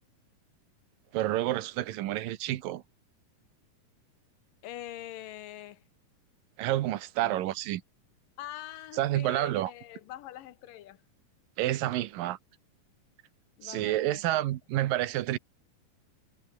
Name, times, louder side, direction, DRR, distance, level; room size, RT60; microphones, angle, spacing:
voice 1, 1.1-2.8 6.6-7.8 8.9-9.7 11.6-12.4 13.6-15.4, right 15 dB, 90° right, 2.8 m, -29 dB
voice 2, 4.6-5.8 7.2-7.5 8.4-11.0 13.6-14.5, left 13 dB, 85° left, 2.8 m, -44 dB
omnidirectional pair, 3.8 m